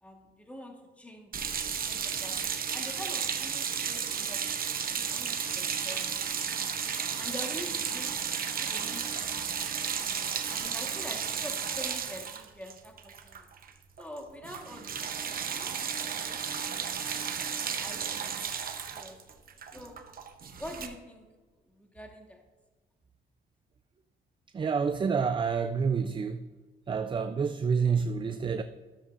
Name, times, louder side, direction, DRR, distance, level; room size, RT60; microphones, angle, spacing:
voice 1, 0.0-1.3 1.9-2.4 2.7-4.4 4.8-6.0 7.2-8.1 8.6-9.4 10.5-13.5 14.0-15.0 15.5-16.4 16.7-17.2 17.7-18.3 18.5-20.1 20.6-21.3 21.7-22.4, left 1 dB, 5° left, 1.5 m, -45 dB
sound 1, 1.3-13.7 14.0-14.2 14.4-20.9, right 7 dB, 45° right, 0.8 m, -33 dB
voice 2, 24.5-26.5 26.9-28.6, right 5 dB, 25° right, 0.4 m, -28 dB
12.5 x 7.2 x 2.5 m
cardioid pair, 90°, 20 cm